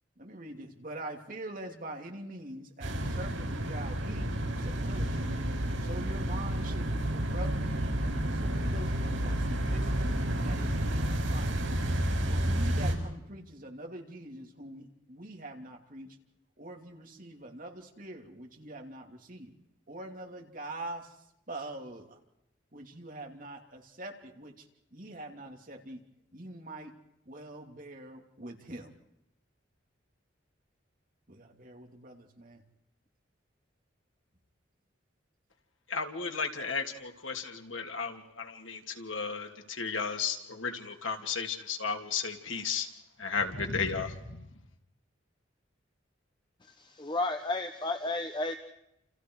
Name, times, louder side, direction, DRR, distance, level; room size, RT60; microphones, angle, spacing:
voice 1, 0.2-5.2 5.8-10.1 10.4-11.5 12.3-16.1 16.6-19.5 19.9-21.1 21.5-22.1 22.7-24.5 24.9-26.0 26.3-26.9 27.3-28.9 31.3-32.6, right 1 dB, 45° right, 3 dB, 3.1 m, -44 dB
sound 1, 2.8-12.9, right 1 dB, 90° right, 6.4 m, -30 dB
voice 2, 35.9-42.9 43.2-44.4, left 5 dB, 90° left, 4 dB, 2.9 m, -34 dB
voice 3, 47.0-48.5, left 2 dB, 25° left, 6 dB, 1.0 m, -32 dB
29.5 x 28.5 x 4.8 m, 0.82 s
head